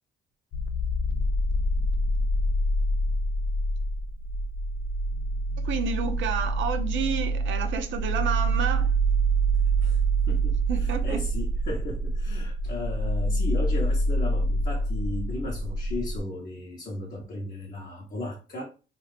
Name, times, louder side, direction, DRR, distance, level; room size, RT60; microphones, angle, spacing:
sound 1, 0.5-16.2, right 2 dB, 70° left, 0.5 m, -26 dB
voice 1, 5.6-8.9 10.7-11.2, right 6 dB, 75° right, 0.5 m, -30 dB
voice 2, 10.3-18.6, left 1 dB, 40° left, 0.9 m, -36 dB
2.8 x 2.4 x 3.2 m
cardioid pair, 90°, 20 cm